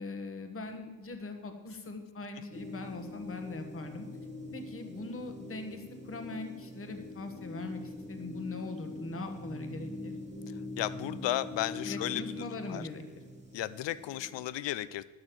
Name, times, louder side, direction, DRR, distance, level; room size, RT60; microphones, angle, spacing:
voice 1, 0.0-4.1 4.5-10.2 11.8-13.2, left 3 dB, 30° left, 5 dB, 1.2 m, -41 dB
sound 1, 2.5-14.5, left 2 dB, 15° right, 1.7 m, -43 dB
voice 2, 10.8-12.2 12.7-12.8 13.5-15.1, left 14 dB, 70° left, 17 dB, 0.6 m, -34 dB
10.5 x 6.4 x 7.7 m, 1.3 s
cardioid pair, 155°, 45 cm